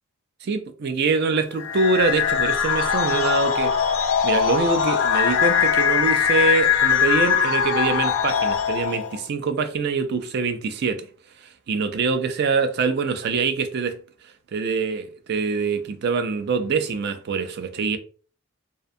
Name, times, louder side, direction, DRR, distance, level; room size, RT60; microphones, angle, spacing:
voice 1, 0.4-3.7 4.2-11.1 11.4-14.0 14.5-18.0, right 4 dB, 50° right, 0.3 m, -24 dB
sound 1, 1.6-9.2, left 7 dB, 70° left, 0.4 m, -21 dB
2.4 x 2.2 x 2.5 m
head